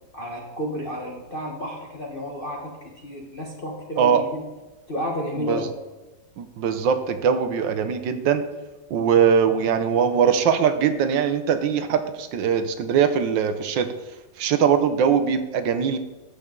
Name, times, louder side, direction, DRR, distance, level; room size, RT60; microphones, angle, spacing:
voice 1, 0.1-4.4 4.9-5.7, equal, 35° left, -1 dB, 1.1 m, -31 dB
voice 2, 6.4-8.4 8.9-13.9 14.4-16.0, right 7 dB, 70° right, 9 dB, 1.4 m, -21 dB
13.5 x 6.7 x 3.7 m, 1.1 s
omnidirectional pair, 2.1 m